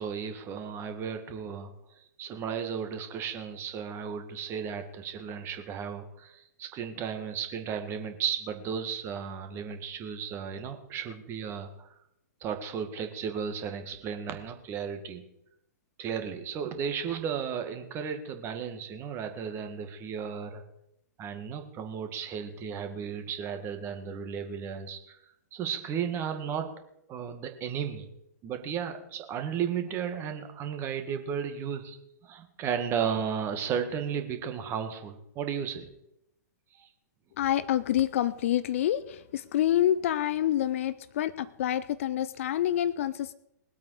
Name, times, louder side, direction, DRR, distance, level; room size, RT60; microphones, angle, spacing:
voice 1, 0.0-11.9 12.4-15.2 16.0-20.6 21.2-25.2 25.5-26.7 27.1-28.1 28.4-32.0 32.2-35.9 36.8-36.9, right 7 dB, 25° right, 6 dB, 1.9 m, -34 dB
voice 2, 37.4-43.3, left 11 dB, 50° left, 17 dB, 0.6 m, -27 dB
21.5 x 8.3 x 4.8 m, 0.80 s
figure-of-eight pair, 110°, 10 cm